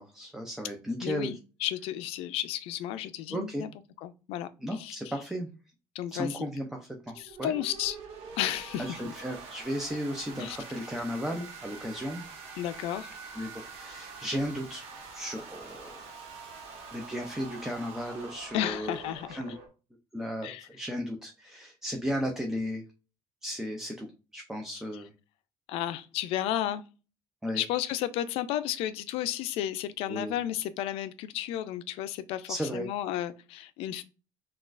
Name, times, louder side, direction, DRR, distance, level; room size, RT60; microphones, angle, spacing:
voice 1, 0.0-1.4 3.3-3.6 4.6-5.5 6.1-7.5 8.8-12.2 13.4-14.9 15.1-16.0 16.9-19.6 20.1-22.8 23.4-25.1 27.4-27.6 30.1-30.3 32.5-32.9, equal, 5° right, 0.4 m, -35 dB
voice 2, 1.0-3.7 4.0-4.5 4.8-5.0 5.9-6.5 7.2-8.0 8.4-8.9 10.4-10.6 12.6-13.1 18.5-19.4 20.4-20.6 25.7-26.8 27.5-34.0, left 12 dB, 75° left, 0.4 m, -33 dB
sound 1, 7.0-19.7, right 4 dB, 70° right, 1.1 m, -45 dB
5.9 x 2.4 x 2.4 m
cardioid pair, 155°, 10 cm